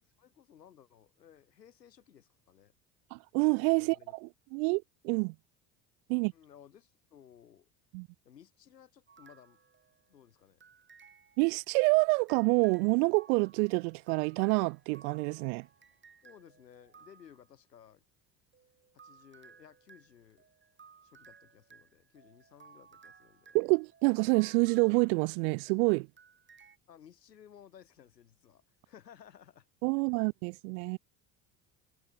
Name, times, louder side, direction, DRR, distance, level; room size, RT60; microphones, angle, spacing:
voice 1, 0.2-2.7 3.8-4.1 6.1-7.7 8.2-9.6 10.1-10.6 16.2-18.0 18.9-20.5 21.0-23.6 26.9-29.7, left 9 dB, 90° left, 7.1 m, -57 dB
voice 2, 3.1-4.0 4.2-5.3 6.1-6.3 7.9-8.1 11.4-15.7 23.5-26.1 29.8-31.0, right 33 dB, 65° right, 0.5 m, -27 dB
sound 1, 9.1-10.2 10.6-17.5 18.5-25.7 26.2-26.8, right 6 dB, 25° right, 1.8 m, -60 dB
hypercardioid pair, 65°, 47 cm